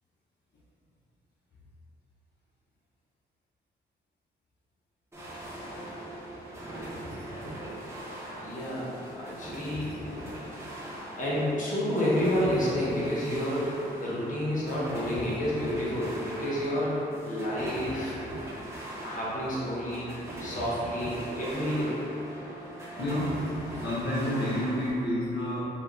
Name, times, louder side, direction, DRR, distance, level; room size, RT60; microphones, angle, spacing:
sound 1, 5.1-24.9, right 1 dB, 15° right, 1.4 m, -40 dB
voice 1, 8.4-10.0 11.2-18.1 19.0-20.1 20.4-22.0, equal, 45° left, -7 dB, 1.4 m, -30 dB
voice 2, 23.0-23.3 23.7-25.7, left 1 dB, 70° left, -10 dB, 1.1 m, -29 dB
4.7 x 2.9 x 3.4 m, 2.8 s
cardioid pair, 75°, 19 cm